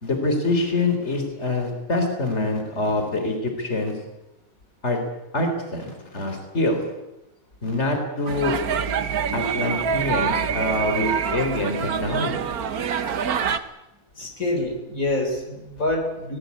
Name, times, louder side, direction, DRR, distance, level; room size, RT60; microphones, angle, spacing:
voice 1, 0.0-3.9 4.8-5.0 5.3-6.8 7.6-8.5 9.3-12.4, left 2 dB, 50° left, 5 dB, 4.2 m, -25 dB
sound 1, 8.3-13.6, right 7 dB, 90° right, 1.6 m, -25 dB
voice 2, 14.2-16.4, left 2 dB, 70° left, 3 dB, 4.4 m, -26 dB
23.5 x 19.5 x 8.5 m, 0.96 s
omnidirectional pair, 1.5 m